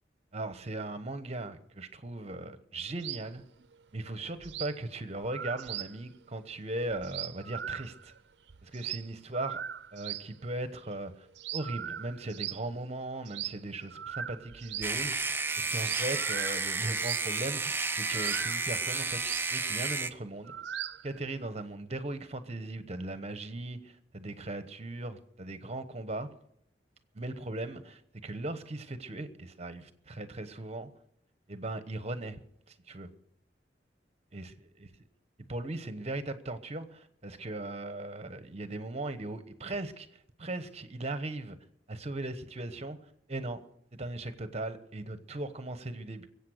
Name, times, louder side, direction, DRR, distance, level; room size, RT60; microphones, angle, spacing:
voice 1, 0.3-3.4 3.9-8.1 8.6-9.6 9.9-11.3 11.5-20.5 21.0-26.3 27.1-30.9 31.5-32.4 32.7-33.1 34.3-34.5 35.4-41.6 41.9-43.6 44.0-46.3, right 2 dB, 35° right, 1.1 m, -38 dB
sound 1, 3.0-3.3 3.6-3.7 4.0-4.1 4.4-4.8 5.2-6.0 6.2-6.3 6.5-6.6 6.9-8.2 8.5-10.3 10.7-10.9 11.3-12.7 13.3-13.6 13.9-15.5 15.8-17.4 18.1-21.2, right 10 dB, 70° right, 0.5 m, -40 dB
sound 2, 14.8-20.1, right 4 dB, 10° right, 0.5 m, -32 dB
21.5 x 8.4 x 6.5 m
head